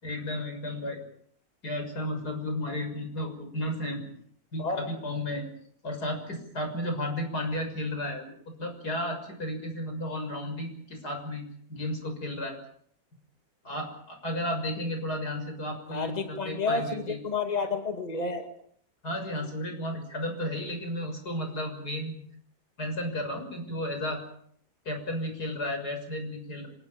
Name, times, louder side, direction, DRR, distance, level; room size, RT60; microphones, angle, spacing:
voice 1, 0.0-1.0 1.6-4.0 4.5-5.5 5.8-8.3 8.6-11.4 11.7-12.6 13.6-17.2 19.0-22.2 22.8-24.2 24.9-26.7, left 1 dB, 80° left, 5 dB, 7.1 m, -33 dB
voice 2, 15.9-18.5, left 4 dB, 25° left, 6 dB, 2.3 m, -30 dB
26.5 x 18.5 x 9.0 m, 0.66 s
omnidirectional pair, 1.7 m